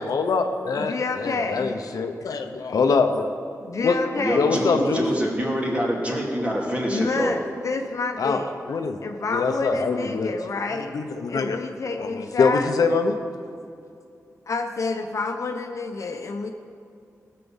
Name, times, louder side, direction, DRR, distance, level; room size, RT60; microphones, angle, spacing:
voice 1, 0.0-3.3 3.8-4.0 4.3-5.0 8.2-8.4 8.7-9.0 9.3-10.3 10.7-11.6 12.0-13.2, left 4 dB, 85° left, 6 dB, 0.9 m, -24 dB
voice 2, 0.7-1.7 3.6-4.7 6.9-8.6 9.0-11.0 11.3-12.7 14.5-16.5, left 3 dB, 60° left, 4 dB, 1.1 m, -28 dB
voice 3, 4.1-7.3, equal, 20° right, -2 dB, 2.7 m, -25 dB
18.5 x 6.8 x 7.3 m, 2.4 s
wide cardioid pair, 125°, 6 cm